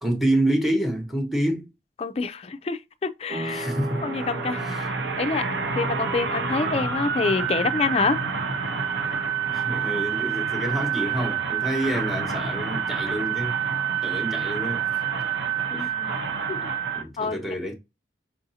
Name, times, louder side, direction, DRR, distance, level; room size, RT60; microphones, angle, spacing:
voice 1, 0.0-1.7 3.5-4.0 4.6-4.9 9.5-13.6 14.0-14.9 15.7-15.9 16.9-17.7, right 1 dB, ahead, 0.9 m, -27 dB
voice 2, 2.0-3.7 4.0-5.5 5.7-8.2 15.7-16.2 16.5-16.6 17.2-17.4, left 4 dB, 35° left, 0.4 m, -27 dB
sound 1, 3.3-11.6, right 1 dB, 50° right, 1.7 m, -41 dB
sound 2, 3.3-17.0, right 6 dB, 80° right, 0.6 m, -28 dB
5.5 x 2.6 x 2.7 m
head